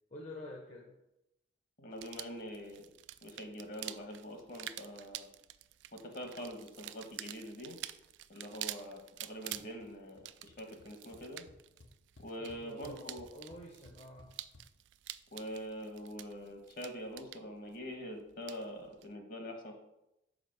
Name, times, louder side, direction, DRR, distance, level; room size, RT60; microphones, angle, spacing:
voice 1, 0.1-1.0 12.4-14.4, left 1 dB, 35° left, 0 dB, 0.8 m, -49 dB
voice 2, 1.8-2.8 3.2-5.3 5.9-7.8 8.3-11.4 12.2-13.3 15.3-19.7, equal, 50° left, 3 dB, 1.2 m, -44 dB
sound 1, 1.9-19.1, right 14 dB, 75° right, 0.3 m, -48 dB
sound 2, 9.5-9.9 10.1-10.5 10.8-10.9 11.1-14.6, left 2 dB, 80° left, 1.0 m, -58 dB
5.0 x 5.0 x 6.2 m, 0.88 s
head